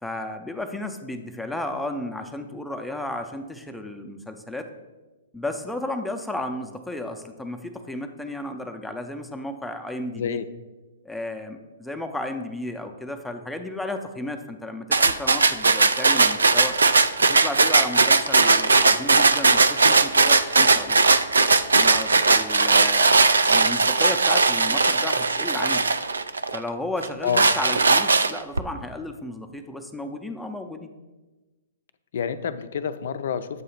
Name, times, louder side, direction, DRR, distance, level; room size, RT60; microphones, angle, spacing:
voice 1, 0.0-4.7 5.3-10.4 11.0-16.8 17.2-21.0 21.7-25.8 26.5-30.9, left 1 dB, 5° left, 5 dB, 0.5 m, -33 dB
voice 2, 10.1-10.5 27.2-27.5 32.1-33.6, left 7 dB, 60° left, 12 dB, 0.4 m, -28 dB
sound 1, 14.9-26.6 27.0-28.6, right 3 dB, 85° right, 0.3 m, -19 dB
7.7 x 2.7 x 5.8 m, 1.2 s
hypercardioid pair, 125°, 0 cm